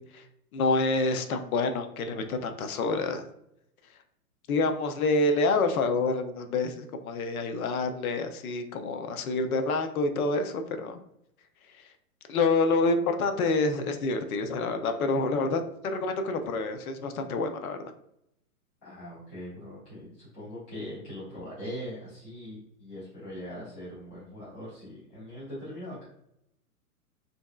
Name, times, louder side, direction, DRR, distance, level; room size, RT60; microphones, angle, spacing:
voice 1, 0.5-3.2 4.5-11.0 12.3-15.6 15.9-17.9, left 3 dB, 70° left, 7 dB, 0.6 m, -27 dB
voice 2, 18.8-26.0, equal, 5° left, -15 dB, 0.3 m, -41 dB
3.0 x 2.6 x 2.2 m, 0.76 s
hypercardioid pair, 135°, 45 cm